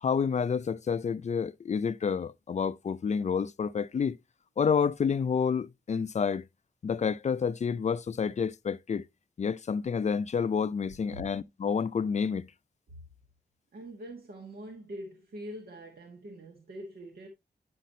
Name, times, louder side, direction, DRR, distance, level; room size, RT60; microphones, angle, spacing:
voice 1, 0.0-4.2 4.6-6.5 6.8-9.0 9.4-12.5, left 6 dB, 40° left, 0.4 m, -29 dB
voice 2, 13.7-17.3, right 1 dB, 60° right, 1.3 m, -44 dB
9.3 x 5.8 x 2.6 m
wide cardioid pair, 150°, 17 cm